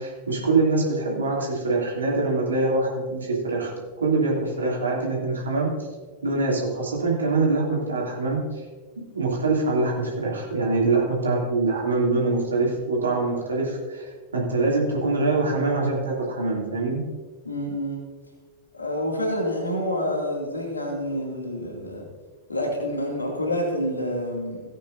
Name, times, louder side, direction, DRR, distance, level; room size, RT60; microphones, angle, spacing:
voice 1, 0.0-3.7 4.0-5.7 6.2-8.4 9.1-17.1, right 3 dB, 75° right, -3 dB, 3.0 m, -24 dB
voice 2, 17.4-18.0 18.7-22.1 22.5-24.6, equal, 80° left, -1 dB, 2.7 m, -28 dB
17.5 x 9.1 x 2.8 m, 1.4 s
figure-of-eight pair, 90°, 0 cm